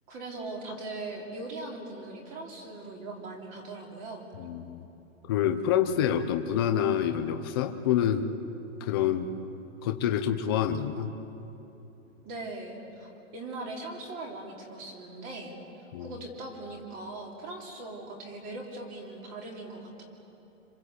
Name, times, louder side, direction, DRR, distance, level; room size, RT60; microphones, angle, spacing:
voice 1, 0.1-4.3 12.2-15.6 16.0-20.1, right 2 dB, 20° right, 1 dB, 3.0 m, -40 dB
voice 2, 4.4-4.9 5.3-8.3 8.8-9.3 9.8-11.1 15.9-16.2, left 9 dB, 20° left, 6 dB, 0.6 m, -27 dB
26.5 x 26.0 x 8.2 m, 3.0 s
hypercardioid pair, 170°, 40 cm